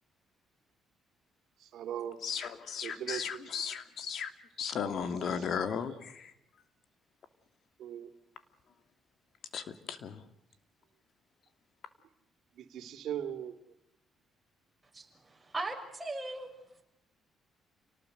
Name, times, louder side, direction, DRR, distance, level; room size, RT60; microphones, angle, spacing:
voice 1, 1.6-3.5 5.0-5.5 7.8-8.1 12.6-13.5, right 10 dB, 75° right, 7 dB, 2.8 m, -40 dB
voice 2, 2.2-4.3 4.6-6.3 9.5-10.2, left 7 dB, 65° left, 10 dB, 2.7 m, -36 dB
voice 3, 14.9-16.5 16.8-16.9, right 2 dB, 15° right, 1 dB, 6.6 m, -39 dB
29.5 x 19.0 x 8.0 m, 0.85 s
cardioid pair, 90°, 0 cm